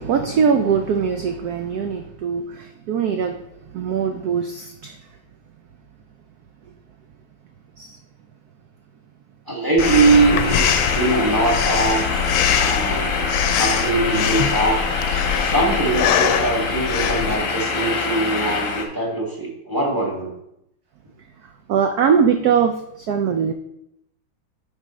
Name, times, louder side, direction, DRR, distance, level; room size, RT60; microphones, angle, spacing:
voice 1, 0.0-3.4 3.7-4.9 7.8-7.9 13.1-13.2 21.7-23.5, right 6 dB, 85° right, 6 dB, 0.8 m, -21 dB
voice 2, 9.5-12.1 12.6-14.8 15.3-20.3, right 3 dB, 10° right, -2 dB, 1.4 m, -21 dB
Breathing, 9.8-17.4, left 8 dB, 80° left, 1.4 m, -23 dB
sound 1, 9.8-18.9, left 4 dB, 50° left, 1.1 m, -25 dB
10.5 x 3.8 x 4.1 m, 0.80 s
omnidirectional pair, 2.2 m